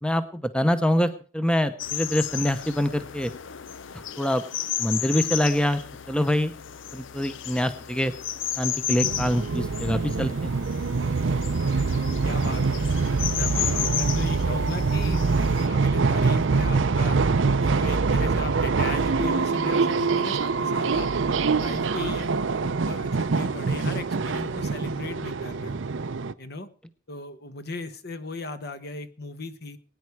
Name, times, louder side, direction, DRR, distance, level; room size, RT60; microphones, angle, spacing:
voice 1, 0.0-3.3 4.2-4.4 4.8-5.8 6.1-6.5 6.9-8.1 8.6-10.5, equal, 5° left, 10 dB, 0.8 m, -25 dB
sound 1, 1.8-15.7, left 10 dB, 85° left, 0.7 m, -33 dB
sound 2, 9.0-26.3, right 4 dB, 75° right, 0.6 m, -24 dB
voice 2, 11.7-12.8 13.2-17.2 17.6-21.1 21.6-22.3 22.6-25.8 26.4-26.7 27.1-29.8, left 3 dB, 55° left, 10 dB, 1.3 m, -37 dB
20.5 x 9.7 x 4.7 m, 0.40 s
head